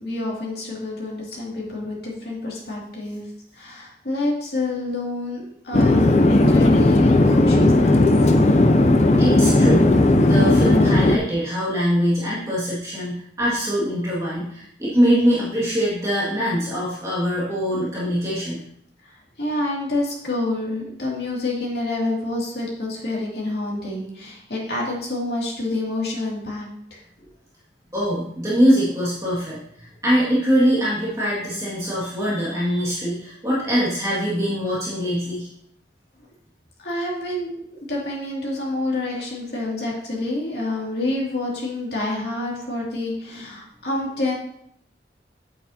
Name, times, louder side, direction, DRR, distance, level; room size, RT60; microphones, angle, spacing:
voice 1, 0.0-3.2 3.5-8.0 8.3-8.4 19.0-27.0 36.8-44.3, left 2 dB, 65° left, -3 dB, 2.6 m, -28 dB
Chatter / Fixed-wing aircraft airplane, 5.7-11.2, left 2 dB, 40° left, 0.5 m, -15 dB
voice 2, 9.2-18.6 27.9-35.5, equal, 20° right, -8 dB, 2.1 m, -23 dB
8.4 x 8.4 x 2.8 m, 0.71 s
head